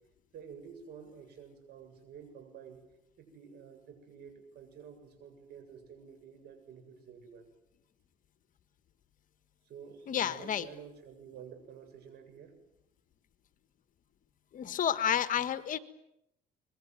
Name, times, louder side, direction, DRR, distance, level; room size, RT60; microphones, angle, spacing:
voice 1, 0.3-2.8 3.2-7.5 9.6-12.5, right 7 dB, 70° right, 7 dB, 7.7 m, -50 dB
voice 2, 10.1-10.6 14.5-15.8, left 9 dB, 50° left, 12 dB, 1.7 m, -30 dB
24.0 x 22.0 x 9.5 m, 0.82 s
cardioid pair, 110°, 17 cm